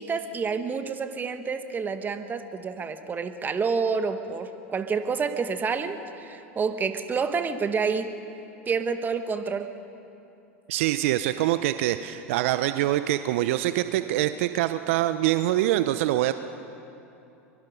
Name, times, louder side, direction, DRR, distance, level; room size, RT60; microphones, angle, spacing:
voice 1, 0.0-8.1 8.7-9.7, right 5 dB, 25° right, 9 dB, 1.5 m, -28 dB
voice 2, 10.7-16.3, right 14 dB, 65° right, 11 dB, 0.6 m, -24 dB
23.5 x 23.5 x 5.3 m, 2.9 s
hypercardioid pair, 90°, 8 cm